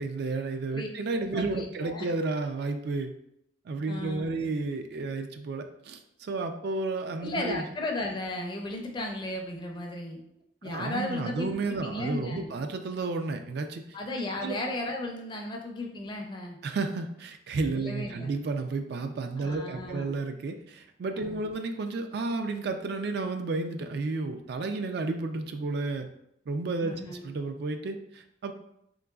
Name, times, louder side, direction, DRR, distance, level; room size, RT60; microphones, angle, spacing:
voice 1, 0.0-3.1 3.7-7.6 10.6-14.0 14.4-14.6 16.6-26.1 26.5-28.5, right 3 dB, 60° right, 7 dB, 0.3 m, -32 dB
voice 2, 1.2-2.1 3.9-4.4 7.2-10.2 10.6-12.5 13.9-16.6 17.7-18.3 19.4-20.1 21.2-21.5 26.8-27.2, left 1 dB, 25° left, 1 dB, 0.5 m, -35 dB
3.8 x 3.0 x 2.3 m, 0.76 s
head